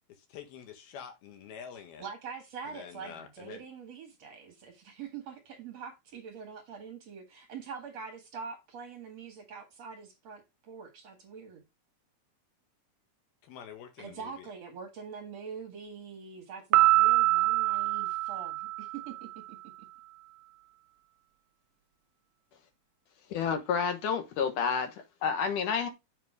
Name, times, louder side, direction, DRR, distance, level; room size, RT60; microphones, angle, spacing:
voice 1, 0.3-2.1 2.7-3.7 13.4-14.5, left 8 dB, 90° left, 3.6 m, -46 dB
voice 2, 2.0-11.6 14.0-19.6, right 6 dB, 55° right, 2.3 m, -44 dB
Piano, 16.7-19.3, right 19 dB, 80° right, 2.4 m, -25 dB
voice 3, 23.3-24.9 25.2-25.9, left 6 dB, 65° left, 2.5 m, -29 dB
7.4 x 5.7 x 4.9 m
omnidirectional pair, 4.2 m